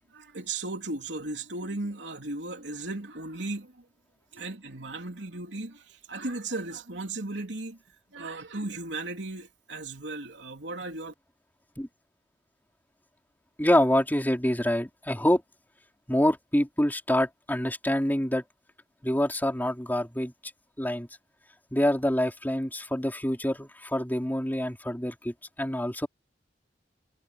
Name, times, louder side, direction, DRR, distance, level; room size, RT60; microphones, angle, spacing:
voice 1, 0.1-3.8 4.3-7.8 8.1-11.1, right 2 dB, 85° right, 3.3 m, -36 dB
voice 2, 13.6-15.4 16.1-18.4 19.0-20.3 20.8-21.1 21.7-26.1, left 1 dB, 10° left, 4.0 m, -26 dB
head